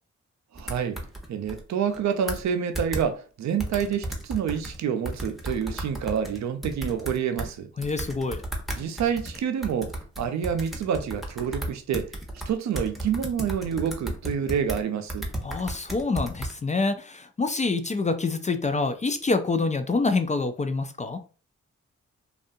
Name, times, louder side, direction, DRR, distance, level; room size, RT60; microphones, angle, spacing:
voice 1, 0.5-1.0 1.3-7.7 8.8-12.1 12.5-15.3, right 8 dB, 65° right, 0.5 m, -28 dB
sound 1, 0.6-1.6 1.9-2.0 2.3-2.5 2.7-3.0 3.6-4.8 5.0-7.5 7.8-14.8 15.1-16.5, right 1 dB, ahead, 0.8 m, -33 dB
voice 2, 7.8-8.4 15.4-21.2, left 3 dB, 25° left, 0.3 m, -26 dB
2.6 x 2.3 x 2.6 m
cardioid pair, 55°, 31 cm